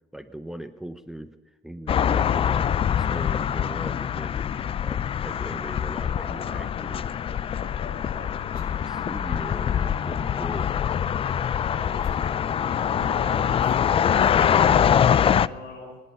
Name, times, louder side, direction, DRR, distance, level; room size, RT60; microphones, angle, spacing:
voice 1, 0.1-1.3 1.6-4.4 4.8-7.2 8.8-10.7, right 1 dB, 5° right, 11 dB, 0.7 m, -39 dB
sound 1, 1.9-15.5, left 8 dB, 35° left, 0.4 m, -24 dB
voice 2, 6.3-6.7 7.2-8.9 11.6-16.0, left 3 dB, 65° left, 3 dB, 5.3 m, -41 dB
21.5 x 11.0 x 5.5 m, 1.4 s
cardioid pair, 110°, 17 cm